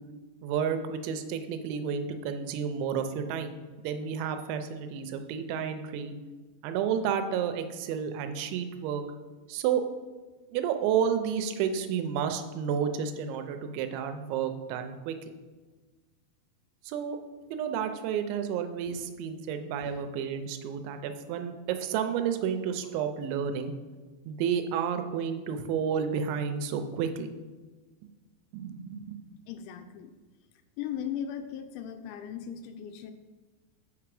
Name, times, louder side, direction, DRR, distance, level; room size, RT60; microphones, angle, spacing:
voice 1, 0.4-6.2 6.6-9.0 9.5-9.8 10.5-15.2 16.9-17.2 17.5-23.7 24.3-27.3 28.5-29.2, right 7 dB, 85° right, 8 dB, 2.9 m, -31 dB
voice 2, 29.5-30.1 30.8-33.1, left 9 dB, 85° left, 7 dB, 2.9 m, -38 dB
8.0 x 5.9 x 4.7 m, 1.3 s
omnidirectional pair, 5.3 m